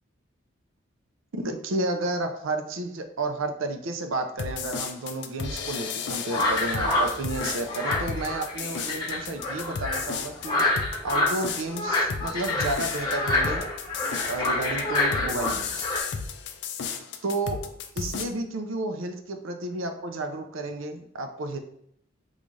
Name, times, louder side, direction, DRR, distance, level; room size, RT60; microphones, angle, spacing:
voice 1, 1.3-10.6 11.0-13.7 14.3-15.9 17.2-17.6 18.0-21.6, right 2 dB, 75° right, 6 dB, 0.5 m, -31 dB
sound 1, 4.4-18.2, left 6 dB, 55° left, 0.4 m, -34 dB
sound 2, 6.3-16.0, left 2 dB, 20° left, 0.8 m, -27 dB
3.8 x 2.4 x 3.1 m, 0.70 s
head